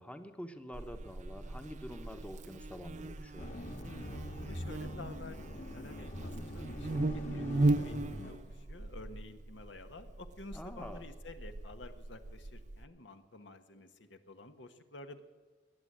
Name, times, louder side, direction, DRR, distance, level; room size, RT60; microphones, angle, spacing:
voice 1, 0.0-3.5 10.5-11.0, equal, 5° left, 8 dB, 0.9 m, -47 dB
Buzz, 0.7-12.9, right 2 dB, 40° right, 0.6 m, -38 dB
sound 1, 3.4-8.4, left 1 dB, 45° left, 1.6 m, -44 dB
voice 2, 4.4-5.4 5.7-15.2, left 2 dB, 80° left, 8 dB, 1.2 m, -50 dB
21.0 x 8.2 x 7.5 m, 1.5 s
head